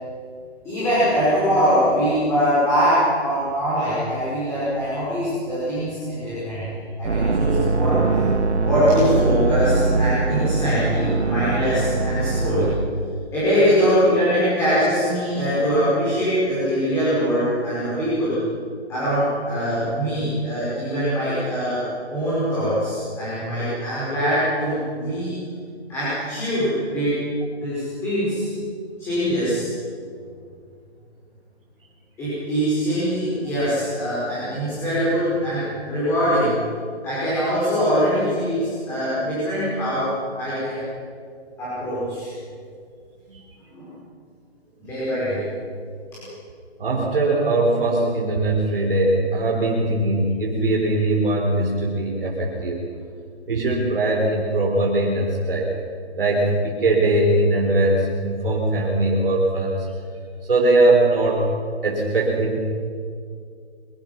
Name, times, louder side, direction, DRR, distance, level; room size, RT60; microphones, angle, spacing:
voice 1, 0.6-8.0 8.6-12.8 13.3-18.4 18.9-21.8 22.1-25.3 25.9-27.2 27.5-28.5 29.0-29.6 32.2-36.5 37.0-40.1 40.4-40.8 41.6-42.3 43.7-43.9 44.8-45.4 46.1-46.3, equal, 5° left, -12 dB, 5.4 m, -22 dB
sound 1, 7.0-12.8, right 3 dB, 90° right, 2.3 m, -21 dB
voice 2, 46.8-52.8 53.5-55.7 56.2-59.9 60.4-61.5 61.8-62.6, right 2 dB, 55° right, -2 dB, 4.1 m, -20 dB
23.5 x 23.5 x 5.9 m, 2.2 s
hypercardioid pair, 170°, 33 cm